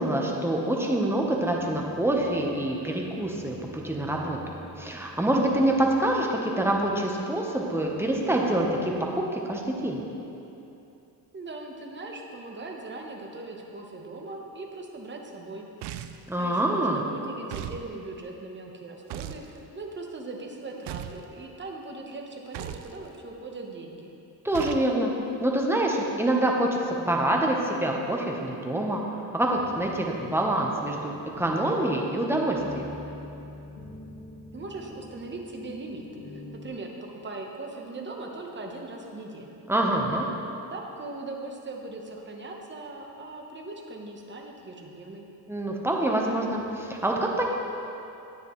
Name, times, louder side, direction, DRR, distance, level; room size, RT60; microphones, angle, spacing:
voice 1, 0.0-10.0 16.3-17.0 24.4-25.1 25.4-29.0 29.3-32.9 39.7-40.3 45.5-47.4, right 1 dB, 5° right, -1 dB, 0.9 m, -26 dB
voice 2, 11.3-15.7 16.4-24.1 34.5-36.9 37.2-39.6 40.7-45.3, right 2 dB, 25° right, 1 dB, 1.0 m, -40 dB
sound 1, 15.8-16.3 17.5-17.8 19.1-19.5 20.9-21.2 22.5-22.9 24.5-24.9, right 11 dB, 75° right, 0.5 m, -37 dB
sound 2, 29.5-36.7, left 2 dB, 75° left, 2.2 m, -44 dB
9.8 x 9.4 x 3.1 m, 2.9 s
cardioid pair, 120°, 40 cm